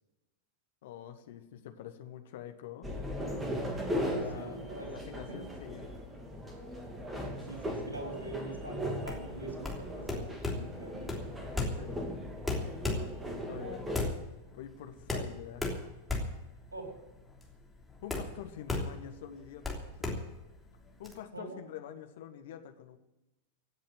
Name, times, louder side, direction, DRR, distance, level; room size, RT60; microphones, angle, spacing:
voice 1, 0.8-2.9 4.1-4.6 4.9-5.9 11.8-12.3 13.4-13.9 14.5-15.7 18.0-20.1 21.0-23.0, left 10 dB, 55° left, 7 dB, 1.6 m, -46 dB
sound 1, 2.8-14.1, equal, 10° right, 2.9 m, -38 dB
voice 2, 4.3-4.9 5.3-5.4 7.4-11.1 16.7-16.9 21.3-21.6, right 2 dB, 80° right, 2 dB, 4.1 m, -44 dB
sound 2, 9.0-21.1, left 2 dB, 5° left, 3.2 m, -36 dB
16.5 x 7.6 x 9.5 m, 1.1 s
figure-of-eight pair, 90°, 0 cm